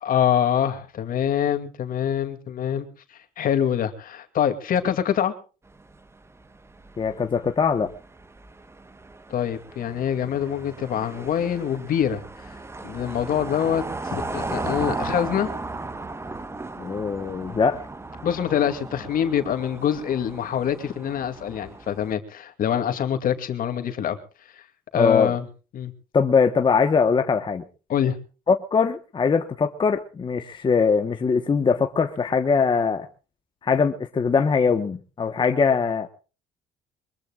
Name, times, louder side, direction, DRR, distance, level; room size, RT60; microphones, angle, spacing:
voice 1, 0.0-2.9 3.4-5.3 9.3-12.2 12.8-15.5 18.2-24.2 24.9-25.4 25.7-25.9 27.9-28.2, left 9 dB, 55° left, 2.5 m, -25 dB
sound 1, 5.7-22.1, right 3 dB, 15° right, 1.2 m, -36 dB
voice 2, 7.0-7.9 16.8-17.8 24.9-25.3 26.1-27.6 28.5-33.1 33.6-36.1, left 5 dB, 30° left, 1.2 m, -21 dB
23.0 x 22.0 x 2.4 m
cardioid pair, 110°, 17 cm